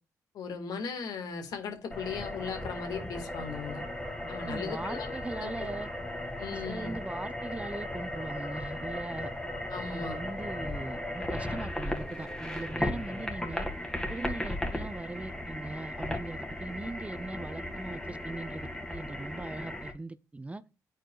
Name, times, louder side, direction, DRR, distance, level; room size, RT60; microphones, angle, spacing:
voice 1, 0.3-3.8 4.3-5.1 5.4-5.7 6.4-6.9 9.7-10.2, left 5 dB, 80° left, 1.8 m, -37 dB
sound 1, 1.9-19.9, left 1 dB, 10° left, 1.9 m, -36 dB
voice 2, 4.2-5.9 6.5-9.3 9.9-13.7 14.1-20.6, right 2 dB, 20° right, 0.6 m, -40 dB
10.0 x 4.6 x 2.4 m
cardioid pair, 65°, 7 cm